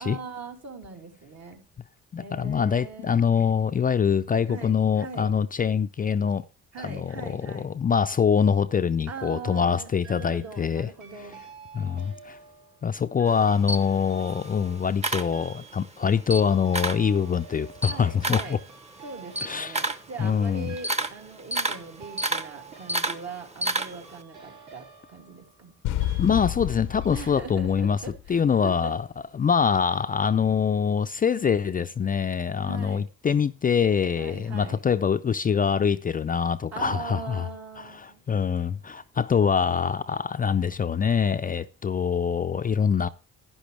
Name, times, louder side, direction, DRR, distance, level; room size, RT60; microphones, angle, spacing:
voice 1, 0.0-1.7 2.2-3.1 4.5-5.3 6.7-7.7 9.1-11.5 17.9-18.6 19.0-25.7 27.1-29.0 32.6-33.1 34.2-34.8 36.7-38.2, right 4 dB, 60° right, 2.8 m, -41 dB
voice 2, 2.1-6.4 6.8-10.9 11.7-12.4 12.8-18.6 19.4-19.8 20.2-20.7 26.2-28.0 28.3-29.1 29.4-37.4 37.9-43.1, left 7 dB, 30° left, 0.4 m, -24 dB
sound 1, 10.0-10.7 11.0-26.7 27.0-27.3, right 6 dB, 75° right, 4.3 m, -50 dB
Camera, 13.3-15.9 16.2-17.1 17.5-24.2, right 2 dB, 20° right, 1.0 m, -30 dB
sound 2, 25.8-28.8, left 13 dB, 85° left, 0.7 m, -31 dB
11.5 x 10.0 x 3.3 m
cardioid pair, 90°, 30 cm